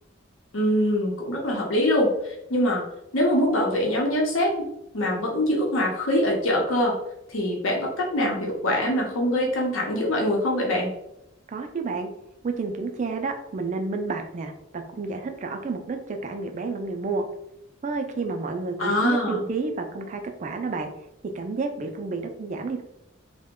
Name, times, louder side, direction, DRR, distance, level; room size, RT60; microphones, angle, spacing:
voice 1, 0.5-2.8 3.1-4.5 4.9-6.9 7.3-10.9 18.8-19.4, left 1 dB, 85° left, -1 dB, 0.8 m, -23 dB
voice 2, 11.5-12.1 12.4-17.3 17.8-20.9 21.3-22.8, right 3 dB, 35° right, 5 dB, 0.4 m, -30 dB
2.9 x 2.1 x 3.5 m, 0.81 s
head